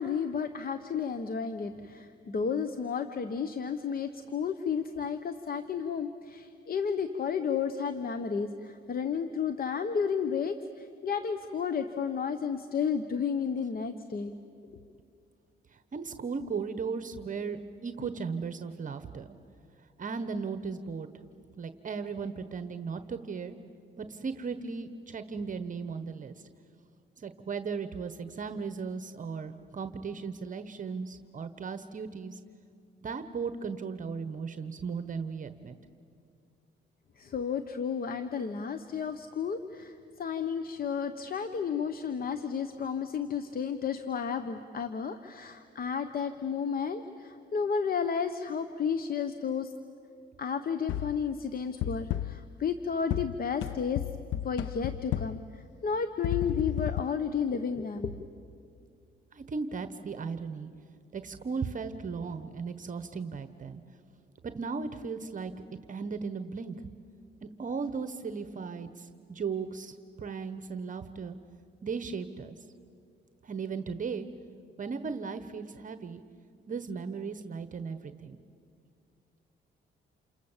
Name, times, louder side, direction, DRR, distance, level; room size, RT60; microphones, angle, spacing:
voice 1, 0.0-14.3 37.2-49.7 50.4-54.0 54.4-58.1, left 6 dB, 50° left, 10 dB, 1.1 m, -32 dB
voice 2, 15.7-19.3 20.0-21.1 21.6-23.6 24.0-26.3 27.2-32.4 33.0-35.8 59.3-60.7 61.1-63.8 64.4-65.5 65.9-66.8 67.4-71.4 71.8-72.5 73.4-74.3 74.8-76.2 76.7-78.4, right 5 dB, 40° right, 10 dB, 1.1 m, -36 dB
sound 1, 50.9-51.3 51.8-52.5 53.1-55.5 56.2-57.0, left 12 dB, 70° left, 0.6 m, -33 dB
29.0 x 27.0 x 7.3 m, 2.4 s
cardioid pair, 90°, 20 cm